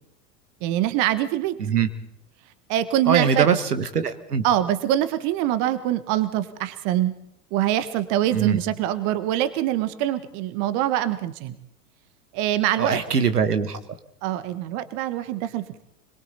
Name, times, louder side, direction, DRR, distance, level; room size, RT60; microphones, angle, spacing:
voice 1, 0.6-1.6 2.7-3.5 4.4-7.1 7.5-11.6 12.3-13.0 14.2-15.8, right 12 dB, 40° right, 13 dB, 1.4 m, -24 dB
voice 2, 3.1-4.4 8.3-8.6 12.8-13.8, right 6 dB, 80° right, 9 dB, 1.5 m, -22 dB
30.0 x 21.5 x 4.2 m, 0.77 s
figure-of-eight pair, 85°, 46 cm